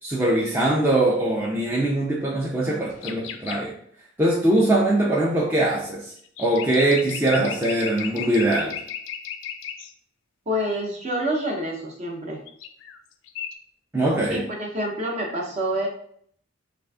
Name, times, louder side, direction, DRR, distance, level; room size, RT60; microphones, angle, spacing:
voice 1, 0.0-3.7 4.2-6.1 6.4-8.8 13.9-14.4, right 1 dB, 10° right, -5 dB, 0.5 m, -22 dB
sound 1, 3.0-3.6 6.3-9.9 12.5-13.0 13.3-13.5, left 8 dB, 60° left, 0.3 m, -35 dB
voice 2, 10.5-12.4 14.3-15.9, equal, 35° right, 0 dB, 0.8 m, -27 dB
3.7 x 2.5 x 3.5 m, 0.63 s
head